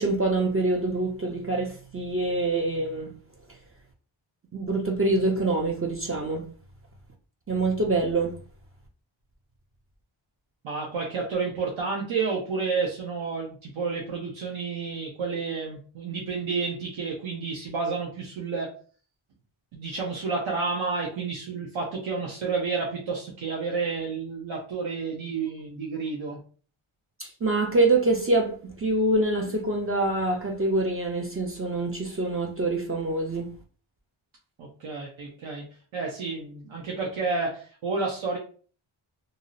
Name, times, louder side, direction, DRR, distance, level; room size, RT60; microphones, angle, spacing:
voice 1, 0.0-3.1 4.5-6.4 7.5-8.4 27.2-33.5, right 2 dB, 30° right, 0.4 m, -25 dB
voice 2, 10.6-18.8 19.7-26.4 34.6-35.6 35.9-38.4, right 4 dB, 75° right, 0.8 m, -30 dB
2.6 x 2.0 x 3.8 m
wide cardioid pair, 175°, 49 cm